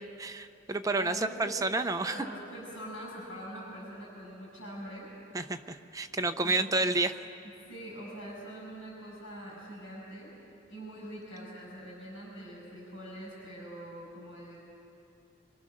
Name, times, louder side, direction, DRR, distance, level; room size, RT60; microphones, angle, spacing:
voice 1, 0.2-2.2 5.3-7.2, right 2 dB, 15° right, 8 dB, 0.6 m, -30 dB
voice 2, 0.9-1.6 2.0-5.1 6.4-6.6 7.7-10.3 10.7-14.6, equal, 80° left, -4 dB, 6.7 m, -44 dB
24.5 x 24.0 x 6.5 m, 2.8 s
head